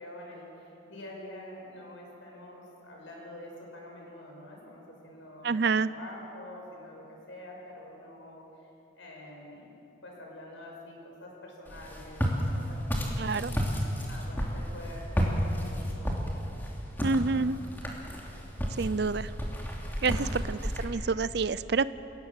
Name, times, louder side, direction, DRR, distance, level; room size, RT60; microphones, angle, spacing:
voice 1, 0.0-8.7 9.0-9.7 10.0-13.5 14.1-15.3 15.5-16.1 18.4-18.5 19.9-20.4, left 1 dB, 80° left, -1 dB, 6.2 m, -47 dB
voice 2, 5.4-5.9 13.2-13.6 17.0-17.6 18.8-19.3 20.0-21.9, right 4 dB, 55° right, 16 dB, 0.5 m, -28 dB
Walk footsteps, 11.7-20.8, equal, 10° left, 2.9 m, -32 dB
28.0 x 17.5 x 7.4 m, 3.0 s
head